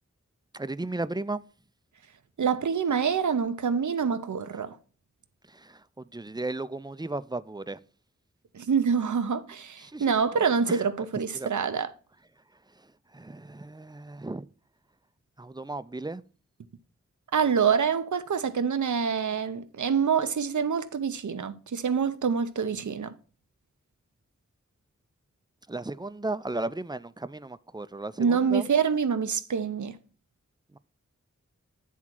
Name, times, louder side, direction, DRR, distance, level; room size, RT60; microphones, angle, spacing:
voice 1, 0.5-1.4 4.5-4.6 5.4-7.8 9.8-10.3 10.7-10.9 11.3-11.5 12.7-14.5 15.4-16.2 25.7-28.7 30.7-30.8, right 2 dB, 15° right, 0.4 m, -35 dB
voice 2, 2.4-4.8 8.5-11.9 17.3-23.1 28.2-30.0, right 6 dB, 80° right, 0.6 m, -26 dB
9.0 x 3.6 x 6.0 m
wide cardioid pair, 40°, 30 cm